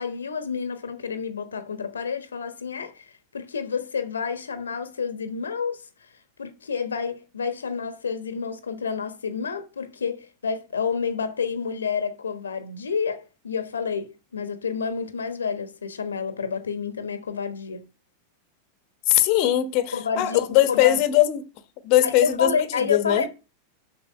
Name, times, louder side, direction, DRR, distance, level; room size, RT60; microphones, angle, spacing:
voice 1, 0.0-6.1 6.4-17.9 19.9-21.0 22.0-23.3, left 5 dB, 70° left, 1.1 m, -29 dB
voice 2, 19.1-21.5 21.8-22.5 22.9-23.3, left 13 dB, 45° left, 1.1 m, -20 dB
6.9 x 6.0 x 7.3 m
figure-of-eight pair, 90°, 0 cm